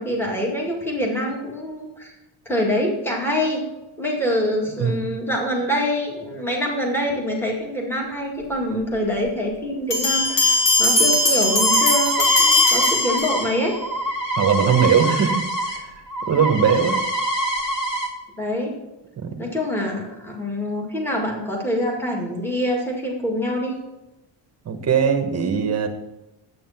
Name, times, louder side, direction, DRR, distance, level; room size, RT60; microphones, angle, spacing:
voice 1, 0.0-2.1 2.5-3.6 4.0-13.8 18.4-18.8 19.4-23.7, left 1 dB, 5° left, -1 dB, 2.1 m, -25 dB
Bell, 9.9-13.7, left 2 dB, 45° left, 3.6 m, -19 dB
sound 1, 11.0-15.8 16.1-18.1, right 1 dB, 70° left, 2.6 m, -25 dB
voice 2, 14.4-15.4 16.3-17.0 19.2-19.3 24.7-25.9, right 7 dB, 35° right, 6 dB, 1.2 m, -19 dB
11.0 x 8.6 x 5.8 m, 0.99 s
cardioid pair, 170°, 46 cm